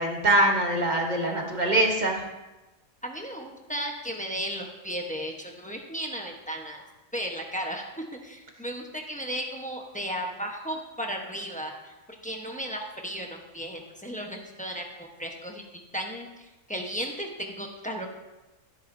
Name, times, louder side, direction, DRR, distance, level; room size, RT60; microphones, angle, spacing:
voice 1, 0.0-2.3, right 1 dB, 35° right, 1 dB, 1.2 m, -23 dB
voice 2, 3.0-6.8 7.1-11.9 12.2-15.6 15.9-18.1, equal, 5° left, 1 dB, 0.9 m, -35 dB
14.0 x 8.8 x 2.7 m, 1.1 s
omnidirectional pair, 1.5 m